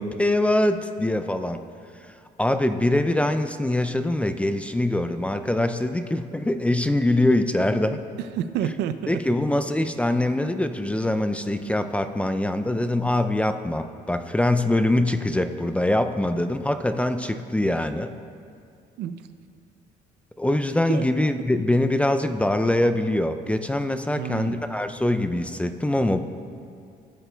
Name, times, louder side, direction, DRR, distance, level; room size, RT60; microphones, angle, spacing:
voice 1, 0.0-1.6 2.4-8.0 9.1-18.1 20.4-26.2, left 1 dB, 10° left, 8 dB, 0.3 m, -23 dB
voice 2, 8.2-9.2 19.0-19.3 20.9-21.1 24.1-24.7, right 9 dB, 85° right, 11 dB, 0.5 m, -29 dB
15.0 x 8.9 x 2.2 m, 2.4 s
cardioid pair, 110°, 17 cm